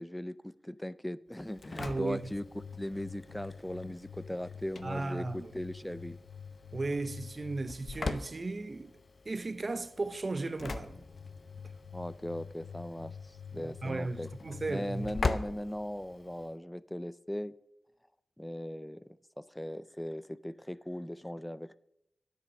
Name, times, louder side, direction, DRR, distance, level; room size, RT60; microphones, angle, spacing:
voice 1, 0.0-2.4 2.8-6.2 11.9-14.3 14.7-17.5 18.4-21.8, left 1 dB, 10° left, 0.4 m, -39 dB
Engine / Slam, 1.4-16.5, left 4 dB, 55° left, 0.7 m, -41 dB
voice 2, 1.8-2.3 4.8-5.5 6.7-8.9 9.2-11.0 13.5-15.1, right 3 dB, 45° right, 0.7 m, -36 dB
9.6 x 8.3 x 6.3 m
cardioid pair, 65°, 0 cm